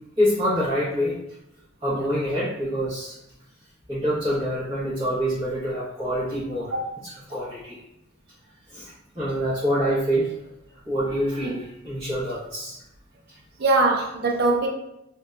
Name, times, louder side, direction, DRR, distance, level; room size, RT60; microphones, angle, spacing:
voice 1, 0.2-1.2 1.8-3.1 3.9-6.7 7.3-7.8 8.7-8.8 9.1-10.3 10.8-12.7, equal, 25° right, -14 dB, 1.0 m, -25 dB
voice 2, 13.6-14.7, right 2 dB, 50° right, 1 dB, 0.4 m, -22 dB
2.6 x 2.1 x 2.3 m, 0.83 s
head